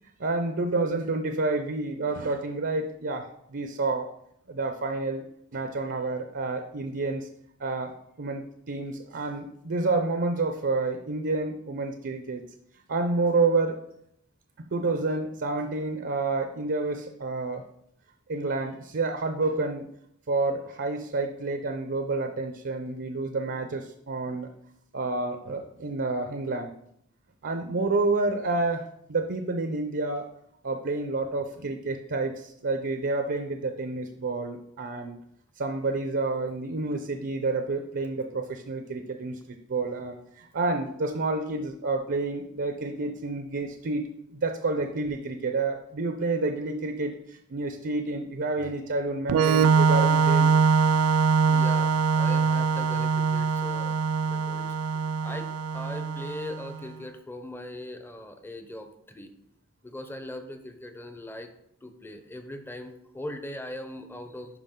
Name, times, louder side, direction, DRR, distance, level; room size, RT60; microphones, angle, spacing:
voice 1, 0.2-4.1 4.5-5.2 5.5-7.3 7.6-12.4 12.9-13.8 14.7-17.6 18.3-19.8 20.3-24.5 24.9-26.7 27.4-28.8 29.1-30.2 30.6-35.2 35.6-50.5, right 3 dB, 55° right, 6 dB, 0.7 m, -29 dB
Organ, 49.3-56.8, right 5 dB, 85° right, 0.3 m, -23 dB
voice 2, 51.5-54.8 55.2-59.3 59.8-61.5 61.8-64.6, left 1 dB, 10° left, 7 dB, 0.7 m, -40 dB
11.0 x 4.7 x 3.7 m, 0.74 s
head